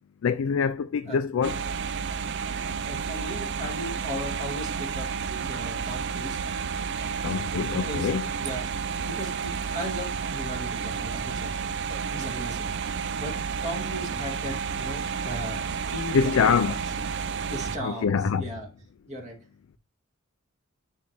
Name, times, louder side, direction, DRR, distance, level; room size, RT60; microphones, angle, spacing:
voice 1, 0.2-1.6 7.2-8.2 16.1-16.8 17.8-18.4, left 6 dB, 70° left, 0.4 m, -24 dB
sound 1, 1.4-17.8, right 6 dB, 55° right, 0.4 m, -31 dB
voice 2, 2.9-5.1 5.4-6.4 7.7-8.1 8.4-8.7 9.0-11.7 12.1-12.7 13.2-13.3 13.6-16.3 16.8-17.1 17.5-18.7 19.1-19.4, equal, 35° right, 2.3 m, -37 dB
9.9 x 3.5 x 3.0 m
head